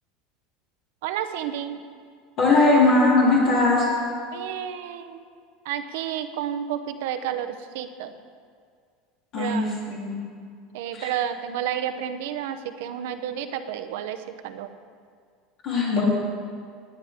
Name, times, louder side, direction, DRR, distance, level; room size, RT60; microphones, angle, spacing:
voice 1, 1.0-1.8 4.3-5.2 5.6-8.1 9.4-9.7 10.7-14.7, right 10 dB, 75° right, 8 dB, 0.8 m, -31 dB
voice 2, 2.4-3.9 9.3-10.2 10.9-11.1 15.6-16.0, left 3 dB, 40° left, -6 dB, 3.1 m, -20 dB
19.0 x 9.8 x 3.6 m, 2.1 s
cardioid pair, 170°, 0 cm